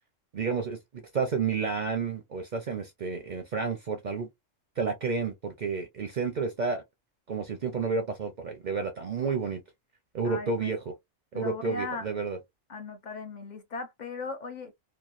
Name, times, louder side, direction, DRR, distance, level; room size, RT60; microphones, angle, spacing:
voice 1, 0.3-4.3 4.8-6.8 7.3-9.6 10.1-10.9 11.3-12.4, right 5 dB, 55° right, 0.5 m, -31 dB
voice 2, 10.2-10.7 11.3-12.1 12.7-14.7, left 3 dB, 55° left, 0.5 m, -38 dB
3.0 x 2.2 x 2.3 m
omnidirectional pair, 1.3 m